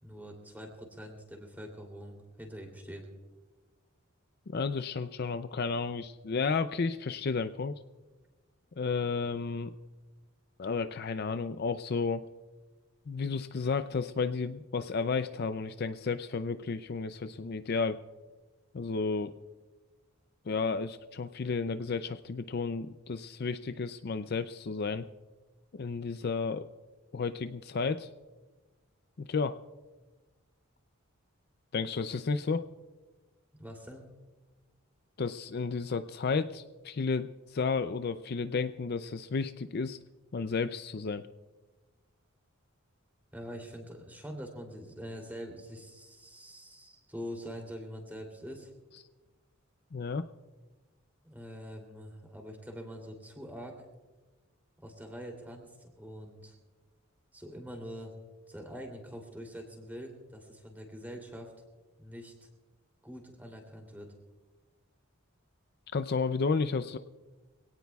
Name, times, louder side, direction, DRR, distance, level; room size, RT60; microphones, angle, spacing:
voice 1, 0.0-3.1 33.6-34.1 43.3-48.7 51.2-53.8 54.8-56.5 57.3-58.1 58.5-61.5 62.0-62.5 63.0-64.1, equal, 10° right, 2 dB, 2.9 m, -44 dB
voice 2, 4.5-7.7 8.8-9.7 10.6-12.2 13.1-18.0 18.7-19.3 20.5-25.1 25.7-26.7 27.1-28.1 29.2-29.6 31.7-32.7 35.2-40.0 40.3-41.3 49.9-50.2 65.9-67.0, left 4 dB, 50° left, 10 dB, 0.5 m, -32 dB
25.0 x 17.5 x 2.3 m, 1.2 s
head